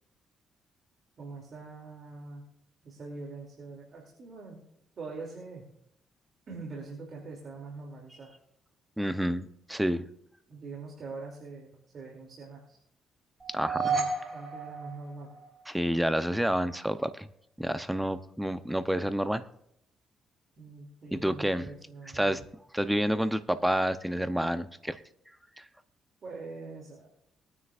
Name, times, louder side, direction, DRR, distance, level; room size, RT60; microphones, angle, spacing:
voice 1, 1.2-2.4 2.8-4.6 5.0-5.6 6.5-8.3 10.5-12.8 13.8-15.3 20.6-22.4 26.2-27.1, right 3 dB, 50° right, -1 dB, 2.8 m, -43 dB
voice 2, 9.0-10.0 13.5-13.9 15.7-17.3 17.6-19.4 21.1-21.7 22.1-22.4 22.7-25.0 25.6-25.7, equal, 5° right, 11 dB, 0.7 m, -29 dB
sound 1, 13.4-15.7, right 4 dB, 25° right, 3.7 m, -32 dB
21.5 x 9.6 x 2.5 m, 0.75 s
cardioid pair, 90°, 0 cm